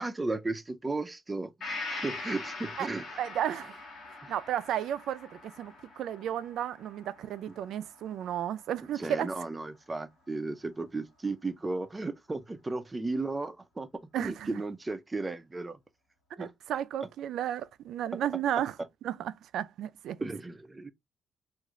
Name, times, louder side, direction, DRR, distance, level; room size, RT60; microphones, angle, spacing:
voice 1, 0.0-3.0 4.2-4.3 7.5-7.6 9.0-13.9 14.2-15.8 16.4-16.5 18.1-18.2 20.2-20.9, right 3 dB, 15° right, 0.5 m, -35 dB
Gong, 1.6-9.2 9.6-9.7, left 3 dB, 55° left, 1.5 m, -43 dB
voice 2, 3.2-3.8 4.3-9.3 14.1-14.6 16.4-18.8 19.0-20.2, right 10 dB, 75° right, 0.4 m, -33 dB
3.1 x 2.5 x 3.6 m
cardioid pair, 155°, 0 cm